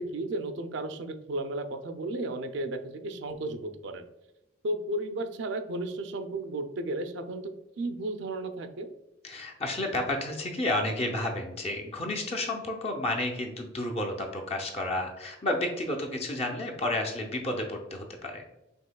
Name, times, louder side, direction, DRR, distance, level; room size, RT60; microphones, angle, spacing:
voice 1, 0.0-4.0 4.6-7.5 7.8-8.9, right 2 dB, 70° right, 8 dB, 0.5 m, -34 dB
voice 2, 9.2-18.4, left 1 dB, 30° left, 1 dB, 0.5 m, -31 dB
5.3 x 3.4 x 2.2 m, 0.93 s
head